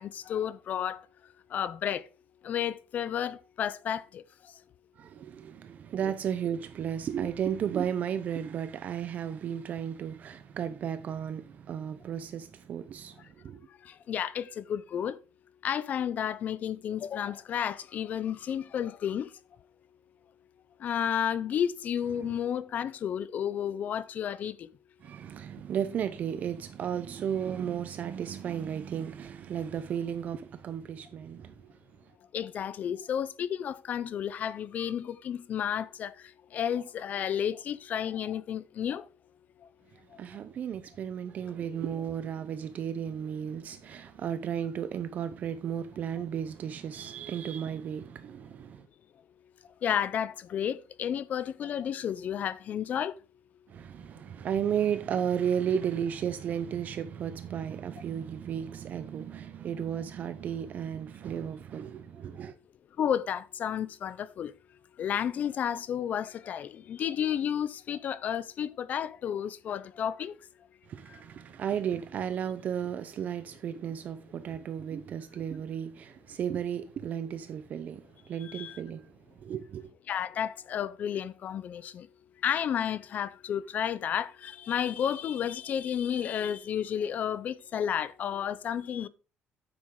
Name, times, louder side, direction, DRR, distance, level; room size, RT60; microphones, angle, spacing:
voice 1, 0.0-2.1 2.4-4.6 13.7-15.2 15.6-19.3 20.8-24.7 32.3-39.1 39.6-39.7 40.1-40.2 49.8-53.2 63.0-64.5 65.0-70.4 71.1-71.2 78.4-78.8 80.1-82.1 82.4-89.1, left 9 dB, 40° left, 0.5 m, -32 dB
voice 2, 5.0-13.7 22.1-22.4 25.0-32.1 39.9-48.9 53.7-62.5 70.9-79.9, right 8 dB, 40° right, 0.6 m, -34 dB
9.5 x 7.7 x 3.7 m
cardioid pair, 175°, 4 cm